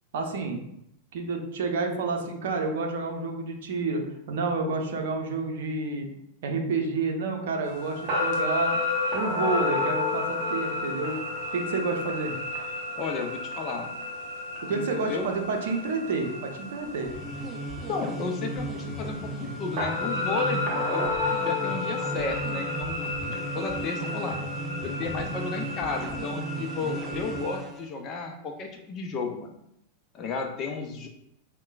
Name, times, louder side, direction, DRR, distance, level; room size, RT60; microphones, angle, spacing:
voice 1, 0.1-0.6 1.1-6.1 6.4-8.8 9.1-11.2 11.5-12.3 14.6-17.1, right 3 dB, 55° right, 3 dB, 0.6 m, -29 dB
sound 1, 7.6-27.6, left 2 dB, 40° right, 1.0 m, -32 dB
voice 2, 12.9-13.9 14.7-15.3 17.9-21.1 21.4-24.4 24.8-29.5 30.1-31.1, left 4 dB, 30° left, 4 dB, 0.5 m, -33 dB
sound 2, 16.8-27.9, right 2 dB, 15° right, 0.5 m, -36 dB
5.2 x 2.2 x 2.3 m, 0.76 s
figure-of-eight pair, 90°, 0 cm